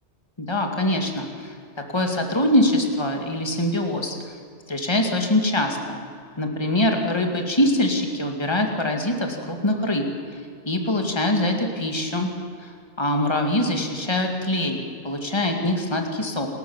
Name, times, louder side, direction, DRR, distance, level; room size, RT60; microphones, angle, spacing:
voice 1, 0.4-1.5 1.9-4.2 4.7-6.0 6.4-10.0 10.7-12.3 12.6-16.5, left 1 dB, 25° left, 3 dB, 2.2 m, -23 dB
28.0 x 13.0 x 7.2 m, 2.4 s
omnidirectional pair, 1.2 m